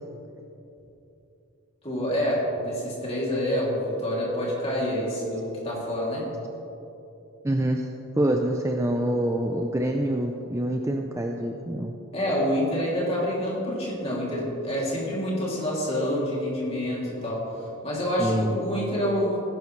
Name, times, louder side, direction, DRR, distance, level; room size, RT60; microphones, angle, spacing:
voice 1, 1.8-6.3 12.1-17.4 17.8-19.4, equal, 25° left, -5 dB, 2.8 m, -27 dB
voice 2, 7.4-7.9 8.2-11.9 18.2-18.5, right 1 dB, 15° right, 3 dB, 0.4 m, -26 dB
16.5 x 10.5 x 3.2 m, 2.9 s
head